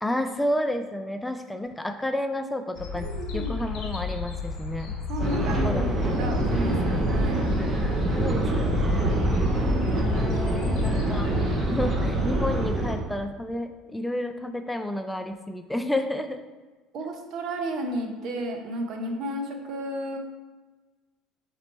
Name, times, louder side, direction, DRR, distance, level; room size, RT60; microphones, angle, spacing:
voice 1, 0.0-3.1 3.3-4.9 5.6-6.2 7.5-9.2 9.9-11.3 11.6-16.4, left 1 dB, 5° left, 7 dB, 0.3 m, -31 dB
sound 1, 2.7-11.6, left 5 dB, 60° left, 0.7 m, -32 dB
voice 2, 2.9-3.6 5.1-5.9 6.2-7.5 16.9-20.2, right 1 dB, 55° right, 4 dB, 0.7 m, -32 dB
sound 2, 5.2-12.9, right 2 dB, 35° right, 0.9 m, -25 dB
4.2 x 3.0 x 4.1 m, 1.3 s
hypercardioid pair, 70°, 0 cm